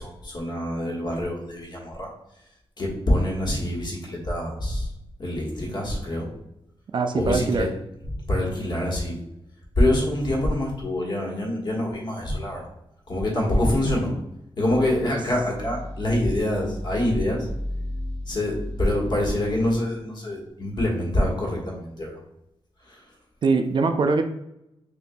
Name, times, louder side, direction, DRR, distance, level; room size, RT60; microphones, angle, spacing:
voice 1, 0.0-2.1 2.8-4.9 5.2-6.3 7.1-7.7 8.0-9.2 9.8-12.7 13.1-14.1 14.6-17.5 18.3-22.2 22.8-23.1, left 1 dB, 45° left, -2 dB, 1.3 m, -25 dB
voice 2, 6.9-7.7 23.4-24.2, right 4 dB, 50° right, 6 dB, 0.4 m, -22 dB
sound 1, 14.6-19.7, left 1 dB, 15° left, 0.9 m, -35 dB
6.7 x 2.5 x 2.2 m, 0.84 s
wide cardioid pair, 130°, 10 cm